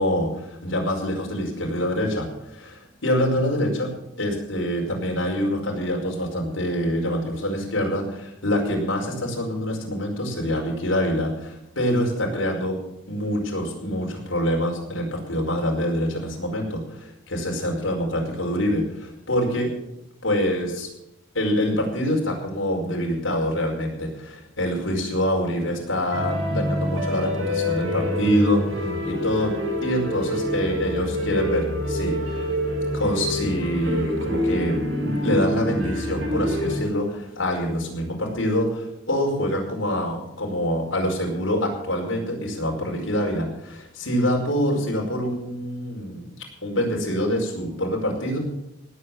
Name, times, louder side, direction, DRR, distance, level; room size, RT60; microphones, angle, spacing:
voice 1, 0.0-3.9 4.2-12.8 13.1-19.7 20.2-20.9 21.3-29.5 29.8-32.5 32.9-46.3 46.6-48.4, equal, 85° left, 0 dB, 5.1 m, -25 dB
sound 1, 26.1-36.8, equal, 85° right, 4.8 m, -26 dB
18.5 x 8.6 x 7.0 m, 0.83 s
head